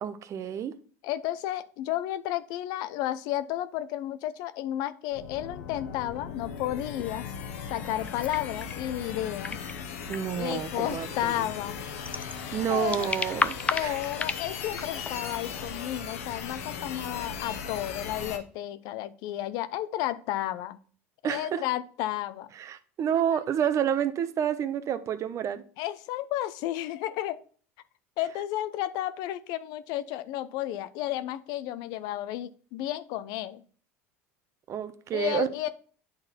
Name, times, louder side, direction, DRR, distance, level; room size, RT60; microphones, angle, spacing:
voice 1, 0.0-0.7 10.1-11.3 12.5-13.6 13.8-13.9 21.2-21.6 22.6-25.6 34.7-35.5, right 9 dB, 45° right, 0.8 m, -29 dB
voice 2, 1.0-7.3 7.7-9.6 10.4-11.8 12.7-13.1 13.7-20.8 21.2-22.5 23.3-23.4 25.8-27.4 28.2-33.6 35.1-35.7, left 13 dB, 65° left, 0.6 m, -32 dB
sound 1, 5.1-18.4, left 6 dB, 85° left, 1.1 m, -38 dB
sound 2, 7.0-15.7, left 4 dB, 20° left, 0.5 m, -36 dB
8.9 x 4.0 x 4.3 m
supercardioid pair, 95°, 8 cm